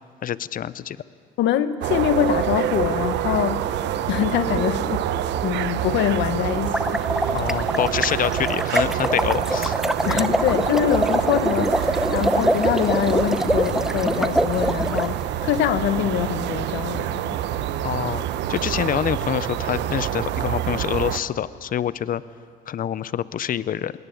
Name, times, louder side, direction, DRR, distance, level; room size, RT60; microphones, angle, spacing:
voice 1, 0.2-1.0 7.3-9.8 10.1-10.2 17.8-18.2 18.5-22.2 22.7-23.9, left 10 dB, 50° left, 17 dB, 0.7 m, -26 dB
voice 2, 1.4-3.7 4.1-5.1 5.4-7.0 10.1-15.2 15.4-17.4, left 11 dB, 75° left, 12 dB, 1.1 m, -24 dB
sound 1, 1.8-21.2, right 11 dB, 70° right, 1.0 m, -26 dB
sound 2, 6.6-15.1, equal, ahead, 0.8 m, -24 dB
20.5 x 18.0 x 8.5 m, 2.1 s
supercardioid pair, 80°, 19 cm